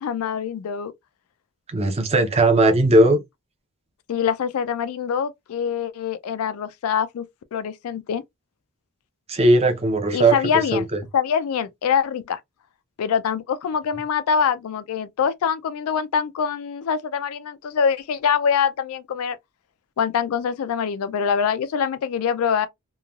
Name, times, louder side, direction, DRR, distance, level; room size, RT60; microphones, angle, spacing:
voice 1, 0.0-0.9 4.1-7.3 7.5-8.2 10.1-10.9 11.1-12.4 13.0-19.4 20.0-22.7, left 7 dB, 70° left, 0.3 m, -24 dB
voice 2, 1.7-3.2 9.3-11.0, right 1 dB, 30° right, 0.6 m, -18 dB
3.0 x 2.2 x 2.3 m
head